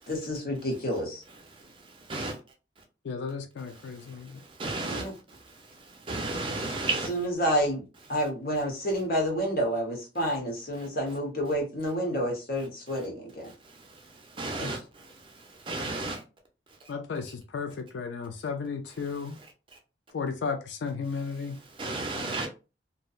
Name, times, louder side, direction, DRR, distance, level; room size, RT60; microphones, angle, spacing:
voice 1, 0.1-1.2 4.9-5.1 7.1-7.8 8.1-13.5 14.6-14.8, equal, 50° left, 0.9 m, -29 dB
voice 2, 1.3-2.4 3.8-7.3 10.2-10.3 10.7-10.9 12.9-13.1 13.4-16.2 21.8-22.5, right 2 dB, 25° right, 0.5 m, -35 dB
voice 3, 3.0-4.4 16.9-19.4 20.1-21.6, left 5 dB, 70° left, 0.3 m, -34 dB
2.6 x 2.1 x 2.4 m
head